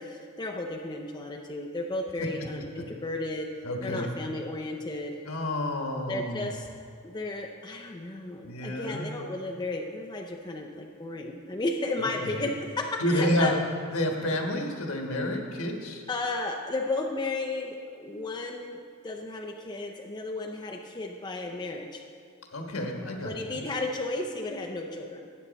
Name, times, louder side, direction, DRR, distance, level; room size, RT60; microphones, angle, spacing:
voice 1, 0.0-5.1 6.1-6.7 7.0-13.6 16.1-22.0 23.2-25.3, left 2 dB, 20° left, 0 dB, 0.5 m, -33 dB
voice 2, 3.6-4.1 5.3-6.5 8.4-9.1 12.0-12.4 13.0-13.5 13.9-16.0 22.5-23.6, left 1 dB, 75° left, 2 dB, 1.4 m, -30 dB
12.5 x 8.5 x 4.1 m, 2.3 s
head